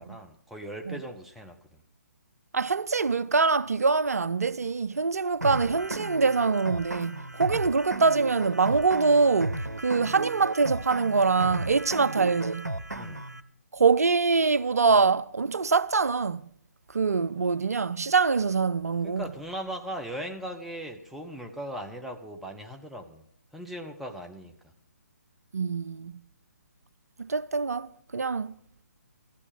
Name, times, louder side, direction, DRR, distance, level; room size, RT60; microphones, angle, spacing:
voice 1, 0.0-1.8 10.0-10.1 12.9-13.2 19.0-23.2 23.5-24.7, equal, ahead, 0.8 m, -39 dB
voice 2, 2.5-12.7 13.7-16.5 16.9-19.2 25.5-26.1 27.2-28.5, right 4 dB, 65° right, 0.4 m, -24 dB
sound 1, 5.4-13.4, right 1 dB, 85° right, 0.9 m, -34 dB
14.0 x 9.8 x 6.4 m
figure-of-eight pair, 140°, 9 cm